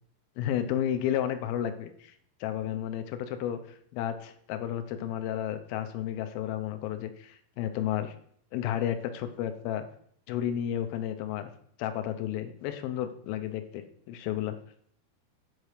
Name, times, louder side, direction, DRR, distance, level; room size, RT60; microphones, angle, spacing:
voice 1, 0.4-2.1 2.4-8.2 8.5-9.9 10.3-11.5 11.8-14.5, left 10 dB, 80° left, 9 dB, 2.3 m, -32 dB
8.1 x 4.6 x 4.8 m, 0.64 s
omnidirectional pair, 4.7 m